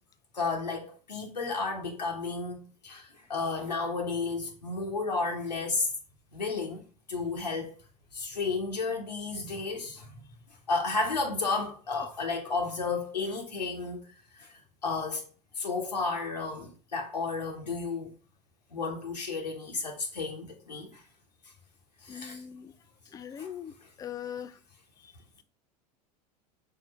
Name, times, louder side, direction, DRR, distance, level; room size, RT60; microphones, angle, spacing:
voice 1, 0.3-5.9 6.3-6.8 7.1-7.8 8.1-10.1 10.7-14.5 14.8-15.2 15.6-18.1 18.7-21.0 22.0-22.4 23.4-23.5, left 4 dB, 85° left, 1.1 m, -32 dB
voice 2, 22.1-22.7 23.1-23.7 24.0-24.6 25.0-25.1, left 9 dB, 15° left, 0.4 m, -40 dB
4.9 x 3.7 x 5.3 m
figure-of-eight pair, 80°, 21 cm